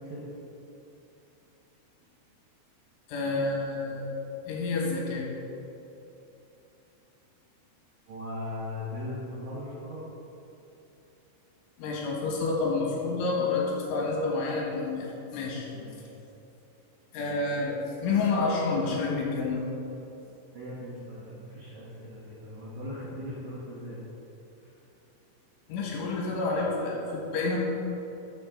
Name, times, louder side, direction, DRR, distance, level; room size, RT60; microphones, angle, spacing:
voice 1, 3.1-4.1 4.5-5.3 11.8-15.1 15.3-15.7 17.1-19.7 25.7-27.6, left 3 dB, 75° left, -3 dB, 4.0 m, -29 dB
voice 2, 8.1-10.0 15.7-16.1 20.5-24.0 24.6-24.7, left 1 dB, 85° right, -7 dB, 1.7 m, -39 dB
12.5 x 6.5 x 3.7 m, 2.9 s
omnidirectional pair, 5.8 m